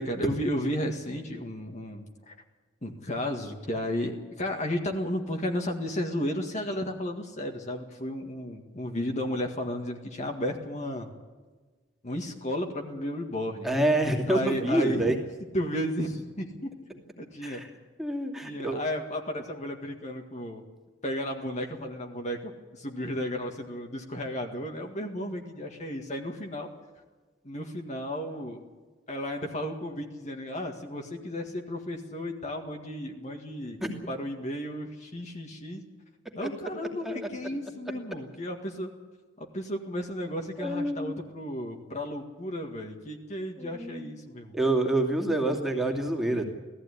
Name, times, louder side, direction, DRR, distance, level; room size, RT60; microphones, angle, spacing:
voice 1, 0.0-2.4 2.8-11.1 12.0-13.7 14.3-15.1 15.5-16.7 17.2-17.6 18.4-20.6 21.0-26.7 27.4-28.6 29.1-33.8 34.1-35.8 36.4-38.9 39.4-44.6, equal, 40° left, 2 dB, 1.9 m, -33 dB
voice 2, 13.6-15.2 17.4-17.7 18.0-18.8 33.8-34.0 36.4-36.5 37.0-37.2 40.6-41.2 43.6-44.1 44.5-46.4, right 1 dB, ahead, 1 dB, 2.6 m, -27 dB
18.0 x 14.5 x 9.9 m, 1.3 s
head